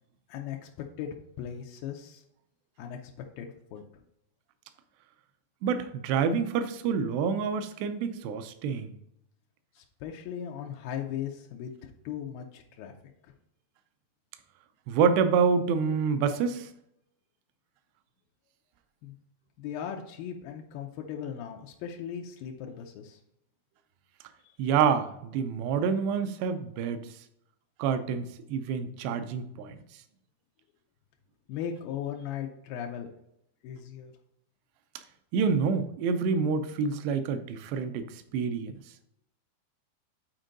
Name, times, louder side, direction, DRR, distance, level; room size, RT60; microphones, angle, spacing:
voice 1, 0.3-0.7 1.0-1.1 1.4-2.2 2.8-3.5 3.7-3.9 9.8-12.9 19.0-19.2 19.6-23.2 31.5-33.1 33.6-34.1, left 9 dB, 90° left, 2 dB, 2.0 m, -38 dB
voice 2, 5.6-8.9 14.9-16.7 24.6-27.1 27.8-29.8 35.3-38.1 38.3-38.7, right 6 dB, 80° right, 9 dB, 2.6 m, -27 dB
8.9 x 4.4 x 3.9 m, 0.78 s
omnidirectional pair, 5.0 m